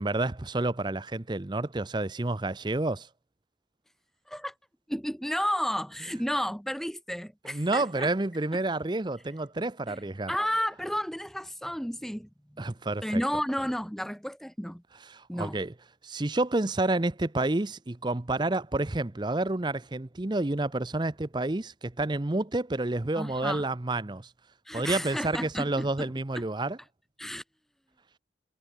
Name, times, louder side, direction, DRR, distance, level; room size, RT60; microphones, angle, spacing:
voice 1, 0.0-3.1 7.5-10.3 12.6-13.2 15.1-15.7 16.0-24.3 24.7-26.8, right 2 dB, 25° right, 0.6 m, -29 dB
voice 2, 4.9-8.1 9.9-10.0 10.3-12.3 13.0-14.8 15.3-15.6 23.2-23.6 24.7-26.1 27.2-27.4, equal, ahead, 3.7 m, -32 dB
head